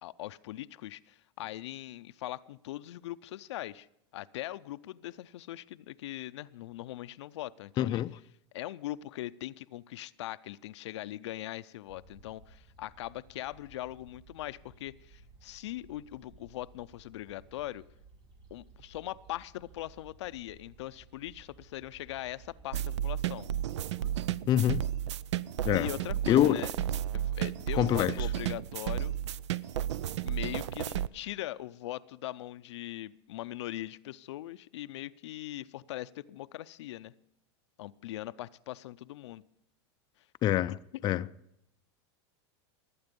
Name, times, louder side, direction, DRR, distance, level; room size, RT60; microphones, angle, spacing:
voice 1, 0.0-3.9 4.1-8.0 8.5-17.8 18.5-23.5 25.7-26.7 27.1-29.1 30.2-37.1 37.8-39.4, left 15 dB, 80° left, 0.5 m, -41 dB
voice 2, 7.8-8.1 24.5-24.9 25.6-25.9 26.3-26.6 27.7-28.1 40.4-40.8 41.0-41.3, left 12 dB, 30° left, 0.4 m, -25 dB
sound 1, 11.9-23.1, right 3 dB, 65° right, 6.5 m, -57 dB
sound 2, 22.7-31.1, right 11 dB, 85° right, 0.5 m, -33 dB
19.0 x 8.8 x 5.3 m
supercardioid pair, 125°, 14 cm